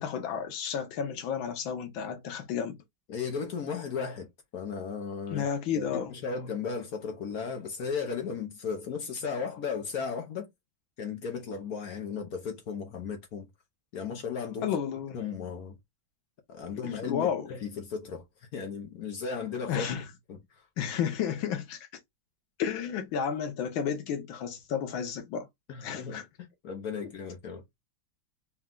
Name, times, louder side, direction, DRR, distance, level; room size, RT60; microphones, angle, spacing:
voice 1, 0.0-2.8 5.3-6.1 14.6-15.2 16.8-17.5 19.7-20.0 20.8-21.9 22.6-25.5 25.8-26.2, left 8 dB, 85° left, 1.5 m, -32 dB
voice 2, 3.1-4.3 4.5-5.4 5.7-5.8 6.1-10.5 11.0-13.5 13.9-14.7 15.1-15.7 16.5-18.2 18.5-19.9 20.3-20.4 25.7-27.6, left 5 dB, 60° left, 1.1 m, -35 dB
4.3 x 2.3 x 3.6 m
omnidirectional pair, 2.1 m